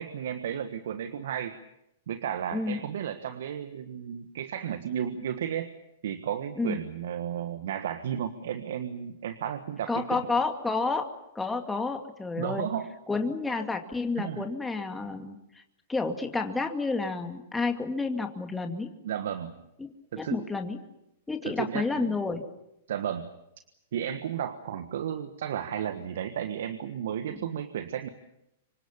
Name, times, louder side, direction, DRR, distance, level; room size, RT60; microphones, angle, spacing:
voice 1, 0.0-1.6 2.1-5.7 6.0-10.2 12.4-12.9 14.2-14.5 19.0-19.6 20.1-20.4 21.4-22.2 22.9-23.3 23.9-28.1, right 9 dB, 65° right, 10 dB, 1.4 m, -33 dB
voice 2, 9.9-11.0 11.3-12.7 13.1-15.6 15.9-18.9 19.8-20.8 21.3-22.4 27.3-27.5, left 3 dB, 10° left, 5 dB, 2.4 m, -30 dB
26.5 x 24.0 x 7.2 m, 0.85 s
hypercardioid pair, 110°, 0 cm